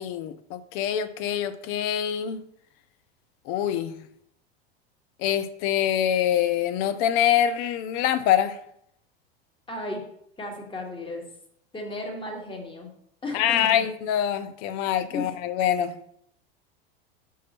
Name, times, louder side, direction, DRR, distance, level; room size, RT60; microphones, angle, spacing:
voice 1, 0.0-2.4 3.5-3.9 5.2-8.6 13.3-16.0, left 10 dB, 45° left, 11 dB, 0.7 m, -25 dB
voice 2, 9.7-10.0 10.4-11.2 11.7-12.9 13.2-13.9 15.1-15.3, left 1 dB, 15° left, 1 dB, 1.7 m, -34 dB
5.5 x 4.7 x 4.4 m, 0.72 s
hypercardioid pair, 90°, 32 cm